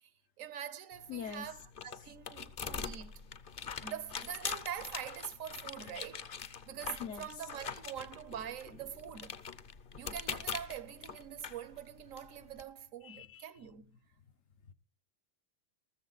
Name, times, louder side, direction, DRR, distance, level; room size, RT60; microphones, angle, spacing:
voice 1, 0.4-3.3 3.8-9.4 10.0-13.9, right 9 dB, 85° right, 1.2 m, -44 dB
sound 1, 0.9-12.6, left 6 dB, 50° left, 0.9 m, -44 dB
voice 2, 1.1-1.5 7.0-7.3 13.0-13.4, left 7 dB, 75° left, 1.2 m, -42 dB
14.0 x 14.0 x 4.0 m
omnidirectional pair, 1.3 m